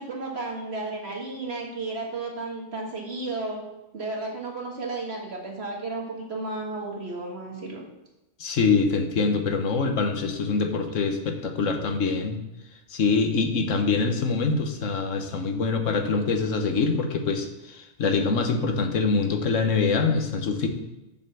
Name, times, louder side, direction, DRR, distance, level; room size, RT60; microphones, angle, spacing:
voice 1, 0.0-3.6 3.9-7.8, right 3 dB, 60° right, -1 dB, 1.9 m, -33 dB
voice 2, 8.4-12.4 12.9-20.7, left 4 dB, 85° left, 5 dB, 1.4 m, -24 dB
6.8 x 5.4 x 6.8 m, 0.99 s
omnidirectional pair, 1.3 m